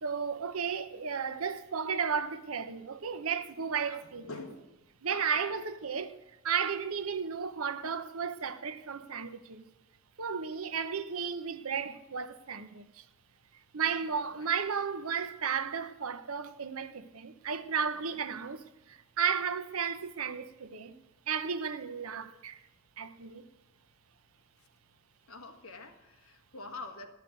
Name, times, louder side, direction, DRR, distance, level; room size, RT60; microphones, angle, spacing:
voice 1, 0.0-4.3 5.0-6.2 6.4-9.6 10.2-13.0 13.7-21.0 21.3-22.6 23.0-23.4, right 6 dB, 85° right, 0.9 m, -34 dB
voice 2, 3.8-4.8 5.1-5.6 14.1-14.5 17.9-18.2 24.6-24.7 25.3-27.1, left 3 dB, 75° left, 1.9 m, -46 dB
13.0 x 6.8 x 9.3 m
head